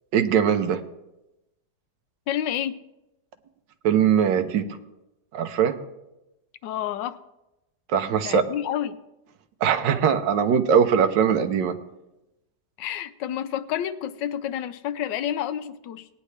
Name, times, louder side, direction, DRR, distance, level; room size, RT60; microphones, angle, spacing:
voice 1, 0.1-0.8 3.8-4.8 5.3-5.8 7.9-8.4 9.6-11.7, right 7 dB, 85° right, 9 dB, 1.5 m, -21 dB
voice 2, 2.3-2.7 6.6-7.2 8.2-9.0 12.8-16.1, left 10 dB, 85° left, 11 dB, 1.3 m, -29 dB
18.5 x 9.6 x 3.3 m, 0.94 s
omnidirectional pair, 1.9 m